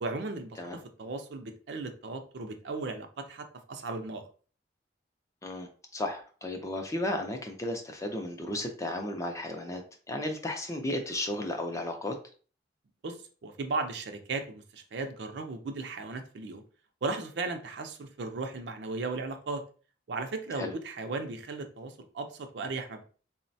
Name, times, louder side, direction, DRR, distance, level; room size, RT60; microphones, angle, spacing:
voice 1, 0.0-4.2 13.0-13.2 13.4-16.6 17.0-19.6 20.1-23.0, right 3 dB, 70° right, 6 dB, 0.5 m, -36 dB
voice 2, 5.4-12.2 20.5-20.7, left 1 dB, 15° left, 4 dB, 0.4 m, -34 dB
3.9 x 2.1 x 2.6 m, 0.40 s
head